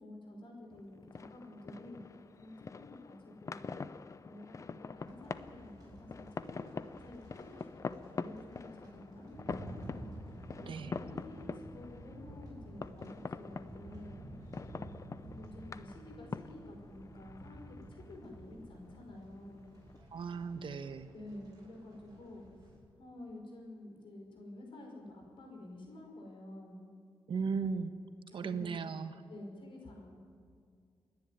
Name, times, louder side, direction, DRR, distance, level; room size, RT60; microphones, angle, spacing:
voice 1, 0.0-2.0 2.4-3.8 4.2-7.6 7.9-10.0 10.6-14.2 14.7-19.7 21.1-22.4 23.0-26.9 28.3-28.7 29.3-30.2, left 1 dB, 65° left, 1 dB, 5.6 m, -50 dB
sound 1, 0.7-20.0, left 4 dB, 35° left, 0.6 m, -46 dB
sound 2, 5.0-22.7, right 1 dB, 40° right, 7.6 m, -52 dB
voice 2, 10.6-10.9 20.1-21.1 27.3-27.9 28.3-29.1, right 5 dB, 65° right, 10 dB, 1.1 m, -36 dB
28.5 x 10.5 x 9.5 m, 2.2 s
wide cardioid pair, 140°, 9 cm